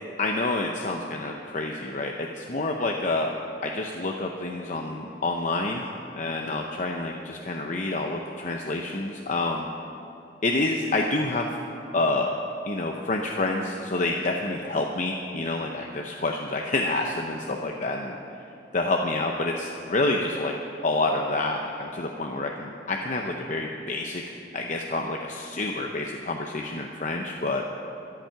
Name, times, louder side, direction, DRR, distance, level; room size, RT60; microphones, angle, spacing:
voice 1, 0.0-3.3 3.6-5.9 6.2-9.6 10.4-11.5 11.9-12.3 12.7-18.2 18.7-20.5 20.8-27.6, left 2 dB, 40° left, 2 dB, 0.7 m, -28 dB
13.5 x 12.0 x 5.8 m, 2.8 s
head